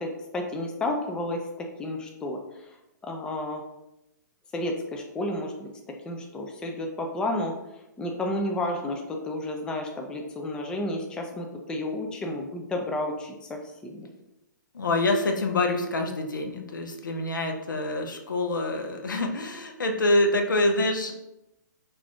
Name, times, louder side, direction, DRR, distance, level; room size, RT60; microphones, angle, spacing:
voice 1, 0.0-2.4 2.7-2.8 3.0-3.6 4.5-5.7 6.1-7.5 8.0-14.1, left 1 dB, 10° left, 2 dB, 0.3 m, -31 dB
voice 2, 14.7-21.1, left 2 dB, 85° left, 3 dB, 0.5 m, -26 dB
2.5 x 2.4 x 3.4 m, 0.90 s
hypercardioid pair, 125°, 10 cm